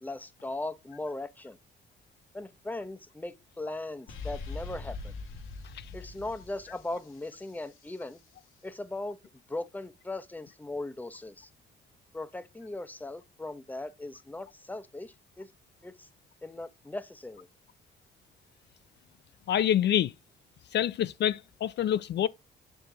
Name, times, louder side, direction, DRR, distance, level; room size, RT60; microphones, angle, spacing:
voice 1, 0.0-1.6 2.3-5.1 5.9-8.2 8.6-9.2 9.5-11.5 12.1-15.5 15.8-16.1 16.4-17.5, left 2 dB, 10° left, 0.8 m, -38 dB
sound 1, 4.1-7.8, left 3 dB, 85° left, 1.6 m, -42 dB
voice 2, 19.5-20.1 20.7-22.3, left 10 dB, 60° left, 0.4 m, -26 dB
6.9 x 4.6 x 3.8 m
cardioid pair, 90°, 20 cm